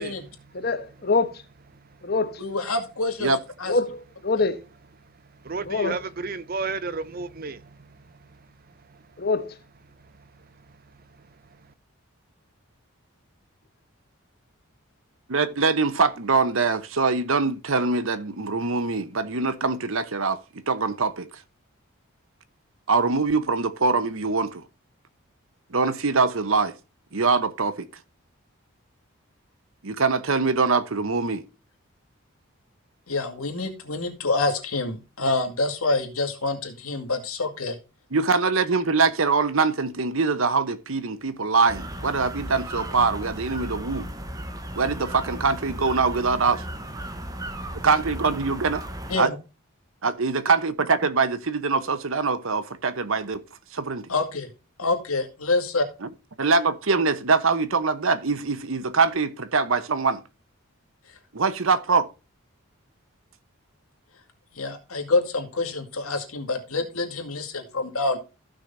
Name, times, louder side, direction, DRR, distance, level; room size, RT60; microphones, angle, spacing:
voice 1, 0.0-0.7 1.7-2.1 5.0-9.2 9.9-11.7, right 4 dB, 45° right, 0.6 m, -36 dB
voice 2, 0.5-1.4 2.0-2.4 3.7-4.6 5.7-6.0 9.2-9.5, left 3 dB, 45° left, 1.1 m, -25 dB
voice 3, 2.4-3.3 3.6-3.7 33.1-37.8 49.1-49.3 54.1-54.5 54.8-55.9 64.5-68.2, left 3 dB, 90° left, 2.4 m, -27 dB
voice 4, 15.3-20.4 20.7-21.3 22.9-24.6 25.7-26.7 27.1-27.9 29.8-31.4 38.1-44.1 44.8-46.6 47.8-48.8 49.2-49.3 50.0-53.4 53.7-54.1 56.0-56.1 56.4-60.2 61.3-62.1, right 4 dB, 70° right, 1.0 m, -23 dB
sound 1, 41.7-49.2, right 1 dB, 15° right, 1.0 m, -36 dB
15.0 x 6.4 x 2.7 m
head